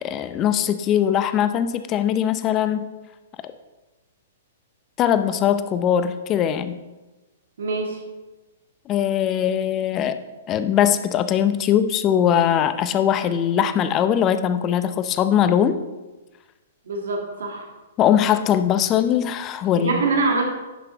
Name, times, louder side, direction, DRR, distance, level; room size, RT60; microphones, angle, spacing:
voice 1, 0.0-2.9 5.0-6.8 8.9-10.2 10.5-15.8 18.0-20.0, left 9 dB, 30° left, 12 dB, 0.6 m, -21 dB
voice 2, 7.6-8.0 16.9-17.7 19.8-20.4, right 3 dB, 75° right, 2 dB, 1.9 m, -24 dB
10.5 x 5.7 x 4.0 m, 1.1 s
hypercardioid pair, 120°, 0 cm